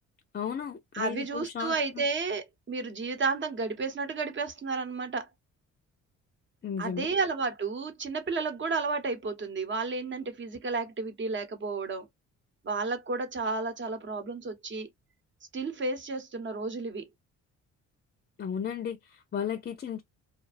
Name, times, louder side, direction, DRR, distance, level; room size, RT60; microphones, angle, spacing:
voice 1, 0.3-2.1 6.6-7.1 18.4-20.0, left 7 dB, 35° left, 0.5 m, -35 dB
voice 2, 0.9-5.3 6.8-12.1 12.6-14.9 15.5-17.0, right 4 dB, 40° right, 0.9 m, -32 dB
2.5 x 2.2 x 2.4 m
cardioid pair, 90°, 30 cm